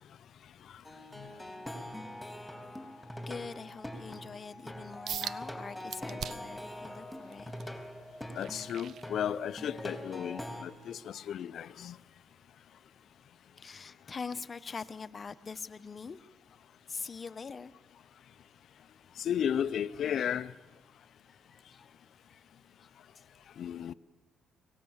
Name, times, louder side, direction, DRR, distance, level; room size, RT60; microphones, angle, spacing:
Plucked string instrument, 0.8-10.6, left 1 dB, 5° left, 3.3 m, -43 dB
voice 1, 3.3-7.5 13.6-16.2 16.9-17.7 21.2-21.9 22.3-22.4 23.2-23.3, left 5 dB, 40° left, 1.0 m, -43 dB
sound 1, 5.1-5.4 5.9-6.6 7.1-9.7 10.1-10.4 10.9-11.0, right 9 dB, 65° right, 0.7 m, -41 dB
voice 2, 8.3-12.0 19.2-20.5 23.6-23.9, left 9 dB, 65° left, 0.6 m, -34 dB
24.0 x 18.5 x 7.3 m
cardioid pair, 90°, 0 cm